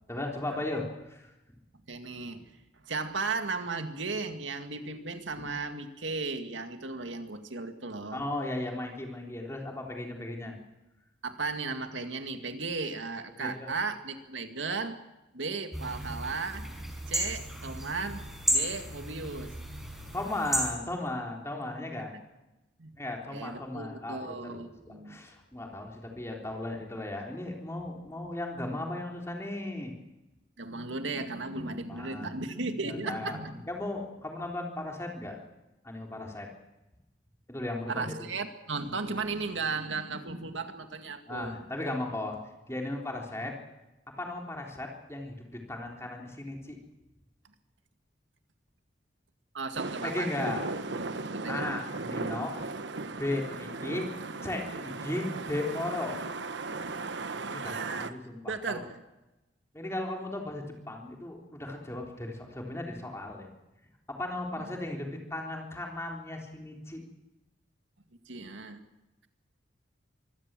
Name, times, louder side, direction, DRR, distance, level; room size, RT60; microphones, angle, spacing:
voice 1, 0.1-1.3 8.1-10.6 13.4-13.7 20.1-22.1 23.0-29.9 31.7-32.4 32.9-33.4 33.7-35.4 35.8-36.5 37.5-38.3 41.3-42.4 42.7-43.5 44.2-46.8 50.0-50.6 51.5-52.7 53.2-54.1 54.4-56.2 57.5-58.8 59.7-63.5 64.1-67.0, left 2 dB, 15° left, 1 dB, 3.7 m, -36 dB
voice 2, 1.9-2.4 2.8-8.2 11.2-15.0 15.3-16.7 17.1-19.5 22.1-22.2 22.8-22.9 23.3-25.2 30.6-33.6 37.9-41.5 41.8-41.9 49.5-50.3 51.3-51.7 57.6-58.1 58.5-59.0 64.6-64.7 68.3-68.8, right 4 dB, 85° right, 7 dB, 2.1 m, -35 dB
sound 1, 15.7-20.7, equal, ahead, 5.4 m, -33 dB
sound 2, 49.7-58.1, right 3 dB, 70° right, 1.1 m, -37 dB
24.5 x 16.5 x 7.6 m, 1.0 s
head